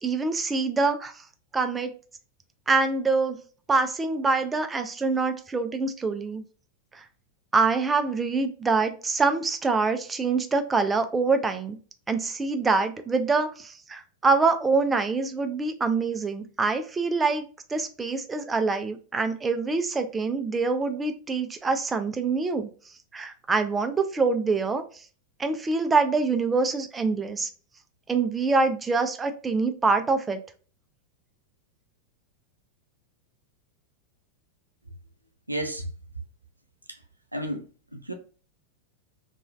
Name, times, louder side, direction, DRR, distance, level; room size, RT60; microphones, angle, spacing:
voice 1, 0.0-1.1 1.5-1.9 2.7-3.4 3.7-6.5 6.9-7.0 7.5-11.8 12.1-17.4 17.7-22.7 23.1-24.8 25.4-27.5 28.1-30.4, right 4 dB, 15° right, 0.4 m, -25 dB
voice 2, 35.5-35.9 37.3-37.6 37.9-38.1, right 1 dB, 85° right, 0.4 m, -31 dB
3.0 x 2.3 x 2.3 m
figure-of-eight pair, 90°, 0 cm